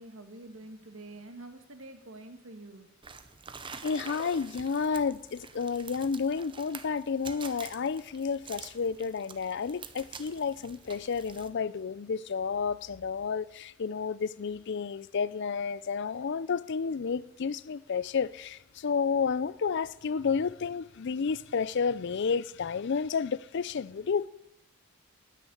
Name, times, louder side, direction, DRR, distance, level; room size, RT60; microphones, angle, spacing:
voice 1, 0.0-2.9, right 2 dB, 60° right, 1.6 m, -47 dB
sound 1, 3.0-11.5, right 5 dB, 25° right, 0.7 m, -47 dB
voice 2, 3.8-24.3, left 5 dB, 55° left, 0.4 m, -31 dB
9.5 x 9.5 x 9.7 m
head